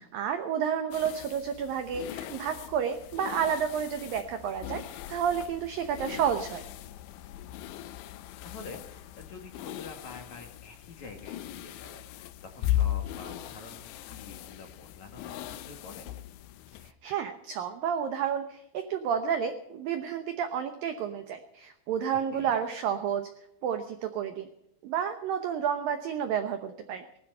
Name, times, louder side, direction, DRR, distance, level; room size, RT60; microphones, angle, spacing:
voice 1, 0.1-6.6 17.0-23.3 23.6-24.5 24.8-27.0, right 8 dB, 85° right, 8 dB, 2.0 m, -30 dB
sound 1, 0.9-16.9, left 13 dB, 75° left, 2.8 m, -38 dB
voice 2, 8.4-16.1 22.1-22.5, left 4 dB, 50° left, 3 dB, 2.5 m, -47 dB
19.0 x 13.0 x 5.5 m, 0.80 s
omnidirectional pair, 5.6 m